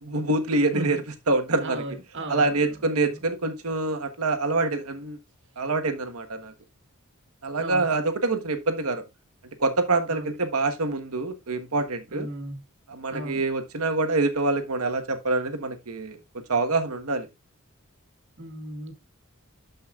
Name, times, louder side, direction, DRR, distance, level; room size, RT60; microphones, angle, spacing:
voice 1, 0.0-1.8 2.3-5.2 5.6-6.5 7.4-9.0 9.6-12.3 12.9-16.2 16.5-17.3, right 3 dB, 90° right, 1.4 m, -26 dB
voice 2, 1.5-2.8 3.1-3.2 7.6-7.9 10.1-10.3 12.1-12.6 13.1-13.4 18.4-18.9, right 1 dB, 60° right, 1.9 m, -36 dB
12.5 x 5.2 x 2.4 m
head